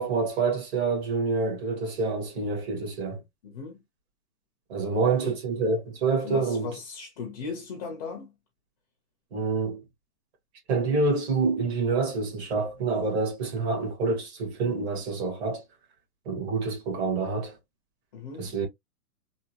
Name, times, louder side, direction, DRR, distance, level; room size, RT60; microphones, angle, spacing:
voice 1, 0.0-3.2 4.7-6.7 9.3-9.8 10.7-15.6 16.3-17.6 18.4-18.7, right 4 dB, 45° right, 1.8 m, -27 dB
voice 2, 3.4-3.8 4.9-5.3 6.2-8.3 18.1-18.5, left 5 dB, 25° left, 0.7 m, -37 dB
3.6 x 2.4 x 2.9 m
hypercardioid pair, 160°, 46 cm